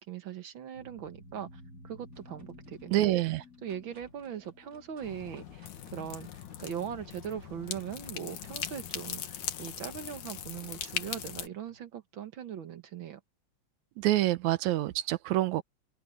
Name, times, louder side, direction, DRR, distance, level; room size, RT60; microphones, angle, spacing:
voice 1, 0.0-1.5 1.8-3.1 3.6-6.3 6.6-13.2, right 9 dB, 50° right, 1.7 m, -40 dB
sound 1, 0.7-5.8, left 2 dB, 30° left, 3.2 m, -53 dB
sound 2, 2.1-11.8, right 1 dB, 25° right, 5.0 m, -61 dB
voice 2, 2.9-3.4 14.0-15.6, right 15 dB, 80° right, 2.1 m, -27 dB
sound 3, 5.0-11.5, left 10 dB, 85° left, 3.0 m, -40 dB
open air
omnidirectional pair, 3.3 m